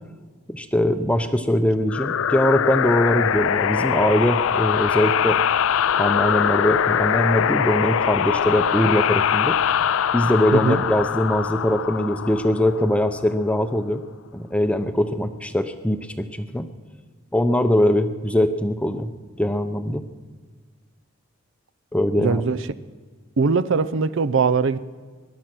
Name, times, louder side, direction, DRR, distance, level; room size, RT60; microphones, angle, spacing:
voice 1, 0.5-5.4 6.0-9.6 10.1-14.0 14.3-16.7 17.3-19.1 19.4-20.0 21.9-22.4, left 1 dB, 5° left, 9 dB, 0.6 m, -21 dB
sound 1, 1.9-13.2, left 8 dB, 70° left, 0.4 m, -22 dB
voice 2, 10.5-10.8 22.2-22.7 23.4-24.8, right 5 dB, 60° right, 14 dB, 0.5 m, -21 dB
21.0 x 11.5 x 6.0 m, 1.5 s
head